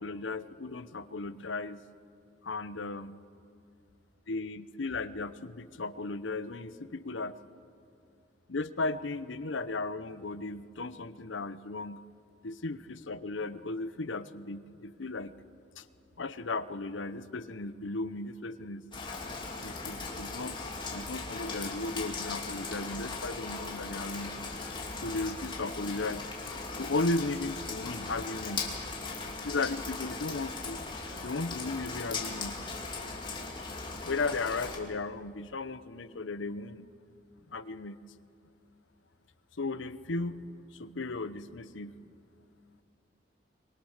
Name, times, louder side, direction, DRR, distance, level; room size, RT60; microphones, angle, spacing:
voice 1, 0.0-1.8 2.4-3.1 4.3-7.3 8.5-12.0 12.4-15.3 15.8-15.9 16.2-18.8 19.6-24.4 25.0-26.2 26.8-28.8 29.4-30.8 31.2-33.0 34.0-36.9 37.5-38.0 39.6-40.4 40.7-41.9, left 3 dB, 85° left, 14 dB, 0.9 m, -35 dB
Rain, 18.9-34.8, left 3 dB, 25° left, 2.8 m, -38 dB
25.0 x 22.5 x 6.6 m, 2.4 s
head